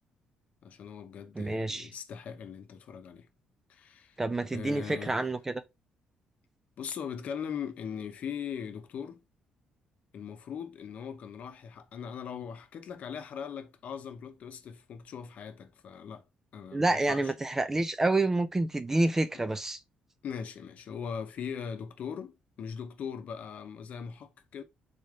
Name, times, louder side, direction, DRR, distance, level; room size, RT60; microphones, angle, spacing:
voice 1, 0.6-3.3 3.7-4.2 4.5-5.2 6.8-9.2 10.1-16.2 16.5-17.3 19.3-19.5 20.2-24.6, left 7 dB, 55° left, 0.8 m, -40 dB
voice 2, 1.4-1.9 4.2-5.6 16.7-19.8, right 2 dB, 15° right, 0.4 m, -28 dB
4.1 x 3.3 x 3.7 m
cardioid pair, 140°, 3 cm